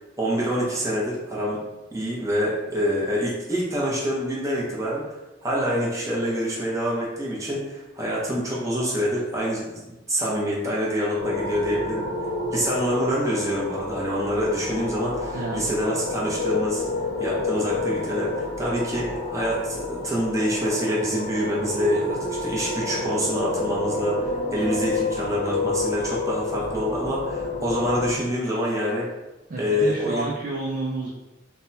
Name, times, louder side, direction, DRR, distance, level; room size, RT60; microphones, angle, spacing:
voice 1, 0.2-1.6 1.9-5.1 5.4-12.0 12.5-16.9 17.2-29.1 29.6-30.3, equal, 15° right, -5 dB, 0.7 m, -26 dB
sound 1, 11.2-28.2, left 2 dB, 40° left, 0.8 m, -29 dB
voice 2, 15.3-15.7 29.5-31.1, right 2 dB, 45° right, -4 dB, 0.4 m, -30 dB
3.3 x 2.1 x 2.7 m, 1.0 s
head